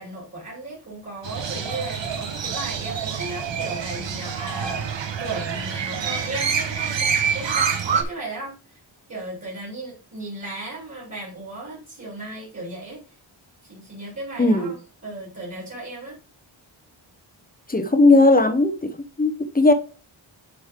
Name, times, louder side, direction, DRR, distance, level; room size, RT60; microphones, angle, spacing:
voice 1, 0.0-8.8 9.1-13.0 13.6-14.8 15.0-16.2, right 2 dB, 35° right, -4 dB, 3.2 m, -36 dB
Crow, 1.2-8.0, right 6 dB, 65° right, 1.3 m, -26 dB
voice 2, 14.4-14.7 17.7-18.9 19.2-19.7, left 2 dB, 20° left, 9 dB, 0.8 m, -17 dB
10.0 x 5.1 x 3.6 m, 0.36 s
wide cardioid pair, 170°, 46 cm